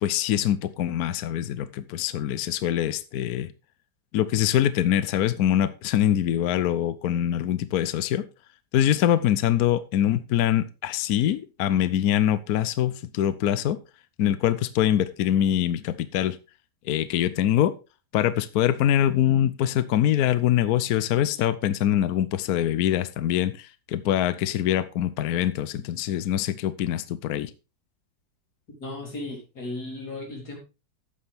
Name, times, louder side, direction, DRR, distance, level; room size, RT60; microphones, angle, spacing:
voice 1, 0.0-3.5 4.1-8.2 8.7-13.8 14.2-16.4 16.8-17.7 18.1-27.5, left 11 dB, 70° left, 0.9 m, -24 dB
voice 2, 28.8-30.6, left 2 dB, 50° left, 4.4 m, -35 dB
12.0 x 8.6 x 3.5 m
omnidirectional pair, 2.2 m